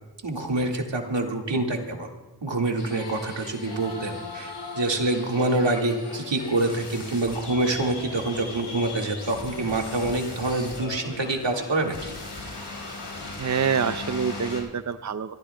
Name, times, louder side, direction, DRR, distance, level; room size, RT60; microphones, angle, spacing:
voice 1, 0.2-2.1 2.4-12.1, right 2 dB, 85° right, 2 dB, 1.8 m, -26 dB
sound 1, 2.8-14.6, left 3 dB, 85° left, 4.9 m, -37 dB
voice 2, 13.4-15.3, right 6 dB, 40° right, 11 dB, 0.5 m, -26 dB
27.5 x 14.0 x 2.2 m, 1.2 s
wide cardioid pair, 60°, 42 cm